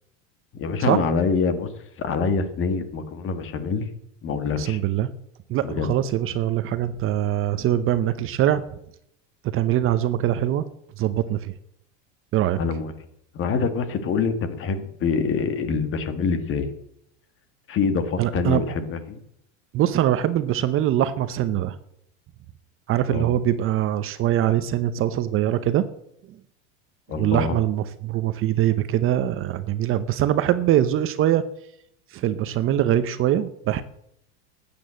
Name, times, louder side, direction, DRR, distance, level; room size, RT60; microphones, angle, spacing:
voice 1, 0.6-1.7 2.0-3.9 4.2-4.8 5.6-5.9 12.6-12.9 13.3-16.7 17.7-19.2 23.1-23.3 27.1-27.6, left 5 dB, 35° left, 10 dB, 1.7 m, -25 dB
voice 2, 4.6-5.1 5.5-8.6 9.5-10.7 11.0-11.5 12.3-12.6 18.2-18.6 19.7-21.8 22.9-25.8 27.2-31.4 32.1-33.8, right 12 dB, 35° right, 12 dB, 0.8 m, -22 dB
12.5 x 8.7 x 7.7 m, 0.75 s
supercardioid pair, 135°, 36 cm